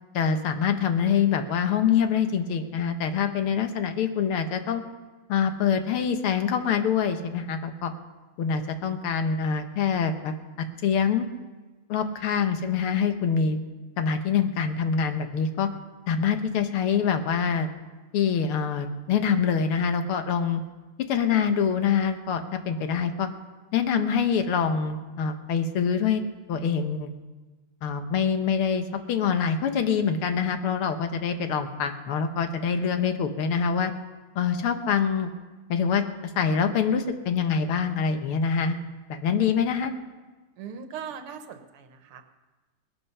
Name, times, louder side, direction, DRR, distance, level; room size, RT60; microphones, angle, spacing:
voice 1, 0.1-4.8 5.3-7.9 8.4-10.3 10.8-11.3 11.9-13.6 14.0-15.7 16.1-17.7 18.1-20.6 21.0-23.3 23.7-26.2 26.5-27.1 27.8-33.9 34.4-35.3 35.7-36.0 36.4-38.8 39.1-39.9, left 7 dB, 80° left, 7 dB, 2.0 m, -25 dB
voice 2, 40.6-42.2, right 7 dB, 90° right, 8 dB, 2.1 m, -39 dB
19.5 x 13.0 x 5.6 m, 1.2 s
omnidirectional pair, 2.4 m